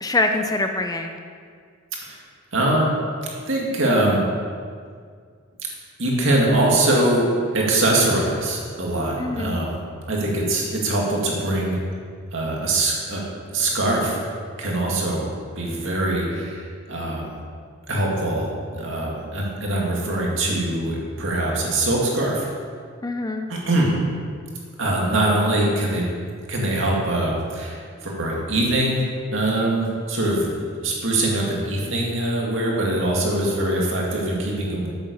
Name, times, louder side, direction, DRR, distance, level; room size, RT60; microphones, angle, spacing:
voice 1, 0.0-1.2 9.2-9.6 23.0-23.5, left 2 dB, 15° left, 5 dB, 0.5 m, -24 dB
voice 2, 2.5-2.9 3.5-4.2 6.0-7.2 7.5-9.8 10.1-11.8 12.3-13.2 13.5-14.2 14.6-15.3 15.6-17.4 17.9-22.5 23.5-23.9 24.8-26.1 26.5-29.0 29.3-34.9, right 1 dB, 60° right, -3 dB, 2.4 m, -22 dB
8.7 x 8.0 x 7.0 m, 2.1 s
head